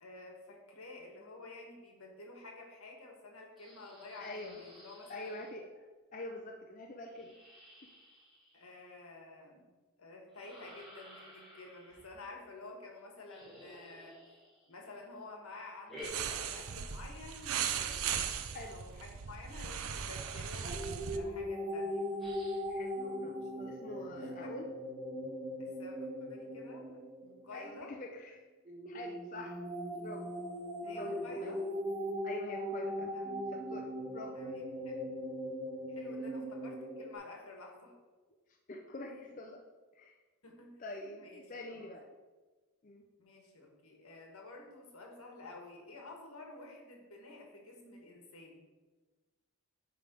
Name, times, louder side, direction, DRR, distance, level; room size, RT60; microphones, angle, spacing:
voice 1, 0.0-5.3 8.5-9.7 10.0-14.1 14.7-18.4 18.7-22.0 24.4-24.5 25.6-27.9 30.8-31.6 33.1-33.3 34.3-35.0 35.9-37.9 39.1-39.3 40.4-41.4 41.7-41.9 43.2-48.7, left 2 dB, 80° left, 1 dB, 1.4 m, -51 dB
sound 1, 3.6-5.5 7.1-8.9 10.3-12.1 13.2-14.9 15.8-17.0 17.3-18.9 19.8-19.9 20.1-21.1 22.2-22.8, equal, ahead, 1.6 m, -54 dB
voice 2, 4.2-4.6 5.1-5.7 6.1-7.4 7.8-7.9 18.5-18.8 22.7-24.7 27.5-28.5 28.8-29.6 29.9-30.3 30.8-31.5 32.2-33.1 33.5-34.4 38.7-39.6 39.9-40.2 40.8-42.1 42.8-43.0, left 2 dB, 35° left, 2 dB, 0.5 m, -45 dB
sound 2, 16.0-21.2, right 8 dB, 75° right, 0.5 m, -38 dB
sound 3, 20.6-27.8 28.7-37.2, equal, 25° right, 0.7 m, -39 dB
8.5 x 3.3 x 5.2 m, 1.3 s
head